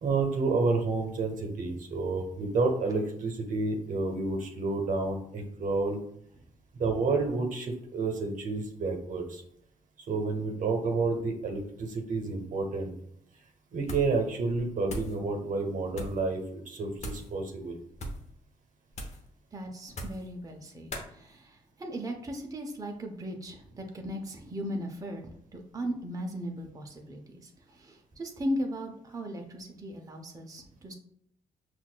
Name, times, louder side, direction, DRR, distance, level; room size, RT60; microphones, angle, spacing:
voice 1, 0.0-6.0 6.7-9.4 10.1-13.0 13.7-17.8, right 3 dB, 60° right, 3 dB, 0.8 m, -30 dB
sound 1, 13.8-14.2 14.5-15.2 15.9-16.2 17.0-17.3 17.9-18.3 18.9-19.3 19.9-20.3 20.9-21.1, equal, 50° left, 0.9 m, -39 dB
voice 2, 19.5-30.9, equal, 25° right, 2 dB, 0.7 m, -37 dB
5.7 x 2.4 x 2.2 m, 0.71 s
supercardioid pair, 60°, 15 cm